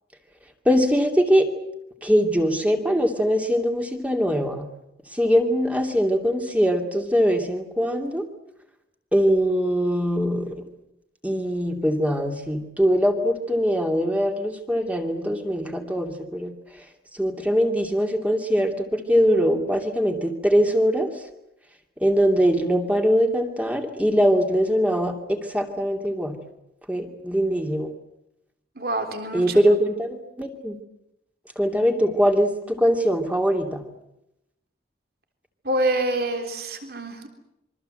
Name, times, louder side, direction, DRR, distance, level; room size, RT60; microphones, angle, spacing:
voice 1, 0.6-1.5 2.0-4.7 5.1-8.2 9.1-10.6 11.2-16.5 17.1-21.1 22.0-26.4 26.9-27.9 29.3-30.8 31.6-33.8, equal, 10° right, 4 dB, 2.7 m, -22 dB
voice 2, 28.8-29.8 35.6-37.3, right 1 dB, 60° right, 6 dB, 3.6 m, -26 dB
27.0 x 23.5 x 7.9 m, 0.86 s
head